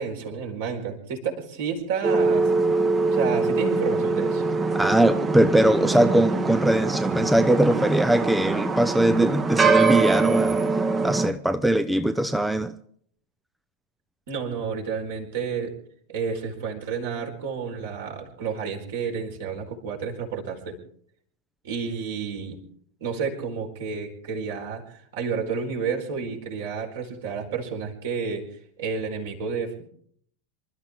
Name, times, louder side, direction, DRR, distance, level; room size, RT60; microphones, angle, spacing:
voice 1, 0.0-2.5 3.1-4.4 14.3-15.7 16.1-20.8 21.6-22.6 23.0-28.5 28.8-29.8, right 6 dB, 55° right, 1 dB, 4.6 m, -30 dB
sound 1, 2.0-11.3, right 3 dB, 20° right, 1.3 m, -23 dB
voice 2, 4.7-10.6 11.0-12.7, right 1 dB, 5° right, 10 dB, 0.7 m, -21 dB
26.5 x 13.0 x 3.6 m, 0.62 s
figure-of-eight pair, 90°, 0 cm